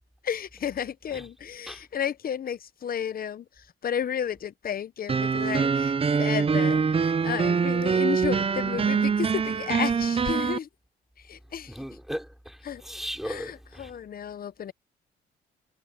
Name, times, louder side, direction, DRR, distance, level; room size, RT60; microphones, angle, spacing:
voice 1, 0.2-10.7 11.2-11.9 12.6-12.8 13.2-14.7, left 8 dB, 50° left, 0.8 m, -33 dB
sound 1, 5.1-10.6, right 5 dB, 30° right, 0.7 m, -24 dB
voice 2, 11.7-13.9, equal, ahead, 4.2 m, -37 dB
cardioid pair, 90°, 20 cm